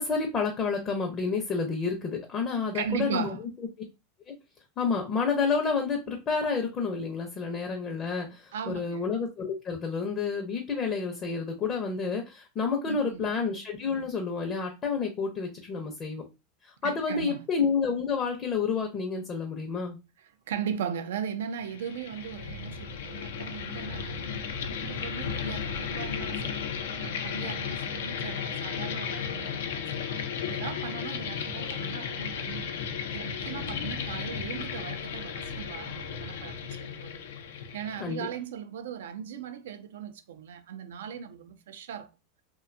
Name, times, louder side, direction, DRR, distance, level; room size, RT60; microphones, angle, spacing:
voice 1, 0.0-3.4 4.3-4.4 4.8-16.2 16.8-20.0 38.0-38.3, left 5 dB, 35° left, 0.5 m, -29 dB
voice 2, 2.7-3.5 8.5-9.0 12.8-13.4 16.8-17.4 20.5-26.6 27.0-30.0 30.5-32.8 33.1-37.2 37.7-42.1, right 8 dB, 85° right, 0.3 m, -38 dB
sound 1, 21.6-38.3, left 7 dB, 85° left, 0.4 m, -34 dB
2.6 x 2.2 x 2.5 m
supercardioid pair, 120°, 0 cm